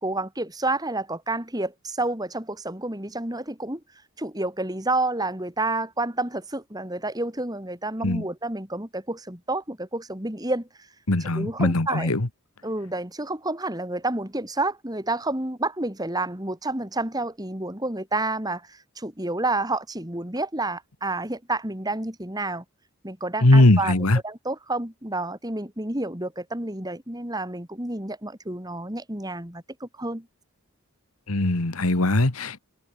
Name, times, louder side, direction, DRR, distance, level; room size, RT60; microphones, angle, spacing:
voice 1, 0.0-3.8 4.2-10.7 11.3-12.1 12.6-22.6 23.0-23.9 24.2-30.3, right 2 dB, 15° right, 3.0 m, -29 dB
voice 2, 11.1-12.3 23.4-24.2 31.3-32.6, left 2 dB, 80° left, 1.7 m, -20 dB
head